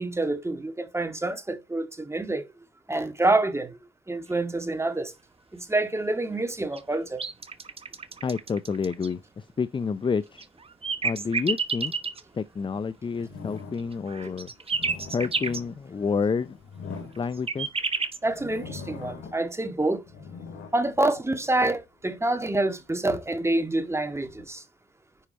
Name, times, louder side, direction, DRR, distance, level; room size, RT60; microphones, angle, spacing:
voice 1, 0.0-2.5 2.9-3.8 4.1-5.1 5.5-7.2 14.2-14.3 18.2-20.0 20.7-24.6, right 2 dB, 15° right, 1.8 m, -27 dB
sound 1, 6.7-9.1 10.4-12.2 13.8-15.6 17.1-18.2, right 5 dB, 30° right, 1.2 m, -30 dB
voice 2, 8.2-10.4 11.0-11.9 12.3-14.5 15.1-16.6 17.2-17.7, left 5 dB, 25° left, 0.5 m, -29 dB
sound 2, 13.2-14.0 14.6-17.8 18.2-19.6 19.9-21.8 22.4-24.5, left 5 dB, 75° left, 3.2 m, -43 dB
10.0 x 4.9 x 4.4 m
cardioid pair, 90°, 20 cm